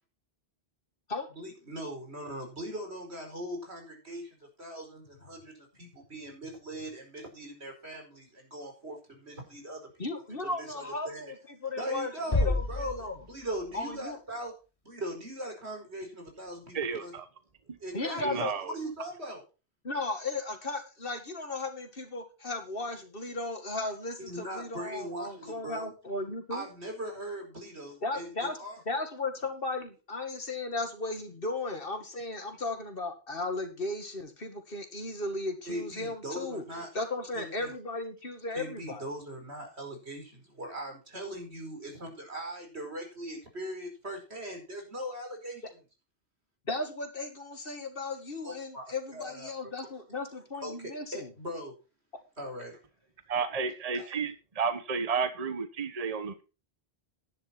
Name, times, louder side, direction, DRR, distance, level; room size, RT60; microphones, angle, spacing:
voice 1, 1.3-4.3 4.6-10.1 10.4-11.3 11.8-14.5 14.8-17.2 17.8-19.4 24.2-25.9 26.5-28.8 35.7-36.9 37.3-37.7 38.5-45.6 48.4-48.9 49.1-49.7 50.6-51.7 52.4-52.8 53.9-54.1, equal, 90° right, 5.0 m, -40 dB
voice 2, 10.0-13.1 13.7-14.2 17.9-18.5 19.8-26.7 28.0-28.6 28.9-36.6 36.9-39.1 46.7-51.3, left 2 dB, 60° left, 2.3 m, -35 dB
sound 1, 12.3-14.3, left 2 dB, 35° left, 1.8 m, -31 dB
voice 3, 16.7-17.2 18.2-18.7 53.3-56.4, right 5 dB, 40° right, 1.1 m, -32 dB
11.0 x 10.0 x 4.5 m
omnidirectional pair, 1.1 m